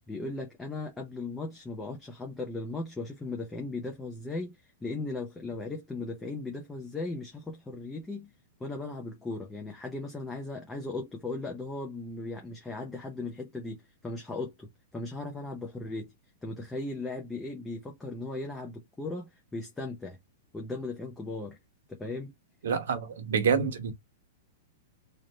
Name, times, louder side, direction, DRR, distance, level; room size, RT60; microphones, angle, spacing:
voice 1, 0.1-8.3 8.6-16.1 16.4-20.2 20.5-21.6 21.9-22.3, left 2 dB, 5° left, 0.6 m, -37 dB
voice 2, 22.6-23.9, right 6 dB, 75° right, 1.0 m, -27 dB
3.2 x 2.6 x 4.2 m
supercardioid pair, 175°, 0 cm